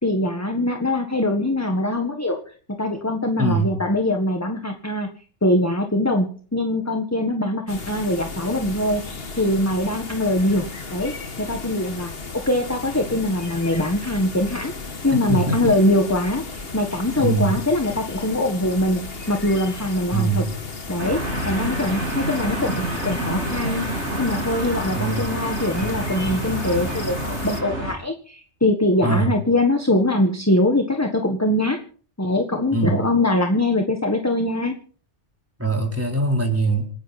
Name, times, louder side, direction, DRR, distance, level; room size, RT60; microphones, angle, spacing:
voice 1, 0.0-2.4 2.7-5.1 5.4-14.7 15.0-20.4 20.9-23.9 24.2-31.8 32.2-34.8, left 1 dB, 15° left, 5 dB, 1.5 m, -22 dB
voice 2, 3.4-3.8 15.3-15.7 17.2-17.5 20.1-20.5 24.9-25.3 29.0-29.3 32.7-33.0 35.6-36.8, right 2 dB, 10° right, 2 dB, 4.2 m, -22 dB
sound 1, 7.7-27.6, left 4 dB, 55° left, 1.9 m, -35 dB
sound 2, 21.0-27.9, right 1 dB, 75° right, 6.9 m, -28 dB
28.0 x 10.5 x 4.3 m, 0.43 s
omnidirectional pair, 1.2 m